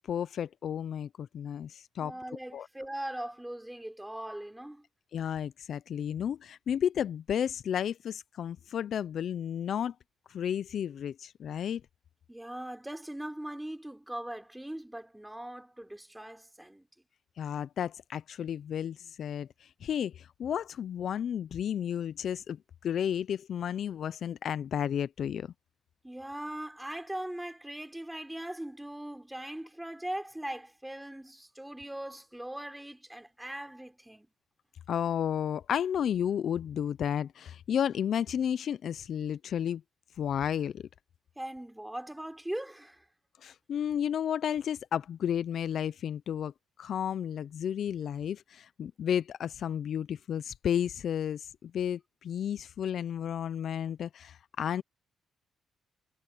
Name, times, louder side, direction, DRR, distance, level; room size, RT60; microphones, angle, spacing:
voice 1, 0.1-2.2 2.5-2.7 5.1-9.9 10.3-11.8 17.4-25.5 34.9-39.8 40.2-40.9 43.4-46.5 46.8-54.8, left 9 dB, 65° left, 0.6 m, -32 dB
voice 2, 2.0-4.8 12.3-16.9 26.0-34.3 41.4-43.0, right 1 dB, 10° right, 4.1 m, -40 dB
supercardioid pair, 60°, 0 cm